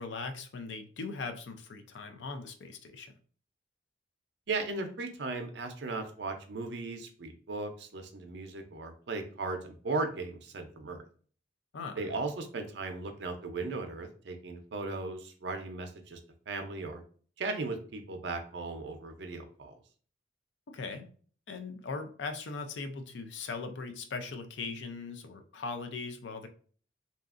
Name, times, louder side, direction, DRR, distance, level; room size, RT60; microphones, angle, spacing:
voice 1, 0.0-3.1 11.7-12.1 20.7-21.1 21.5-26.5, left 4 dB, 70° left, 7 dB, 0.4 m, -39 dB
voice 2, 4.5-11.0 12.0-16.2 16.5-17.0 17.4-19.8, right 3 dB, 65° right, 6 dB, 0.5 m, -37 dB
2.8 x 2.4 x 2.4 m, 0.44 s
head